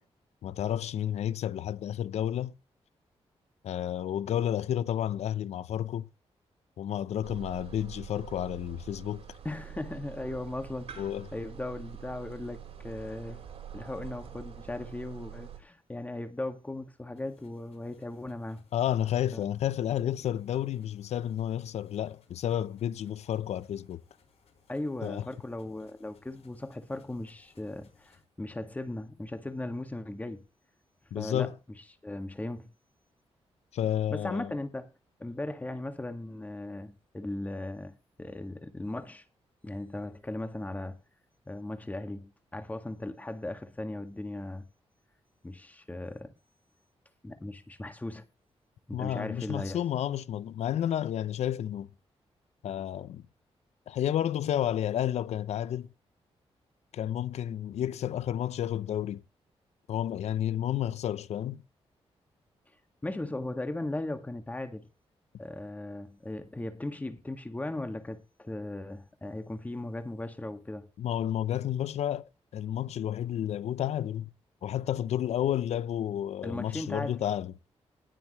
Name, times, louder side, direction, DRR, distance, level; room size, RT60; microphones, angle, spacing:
voice 1, 0.4-2.5 3.6-6.1 6.8-9.2 11.0-11.3 18.7-24.0 25.0-25.2 31.1-31.5 33.7-34.5 48.9-51.9 52.6-53.2 53.9-55.9 56.9-59.2 59.9-61.6 71.0-74.3 74.6-77.5, left 11 dB, 90° left, 0.7 m, -31 dB
sound 1, 7.2-15.6, right 9 dB, 65° right, 3.9 m, -45 dB
voice 2, 9.4-13.4 13.7-18.6 19.3-19.4 24.7-30.4 31.1-31.5 32.0-32.7 34.1-34.9 35.2-39.2 39.6-41.0 41.5-44.7 45.4-46.3 47.2-48.2 48.9-49.8 63.0-64.9 65.4-70.9 76.4-77.2, left 2 dB, 15° left, 1.9 m, -37 dB
sound 2, 17.1-28.2, left 6 dB, 70° left, 5.3 m, -66 dB
20.0 x 7.3 x 3.2 m
cardioid pair, 110°, 11 cm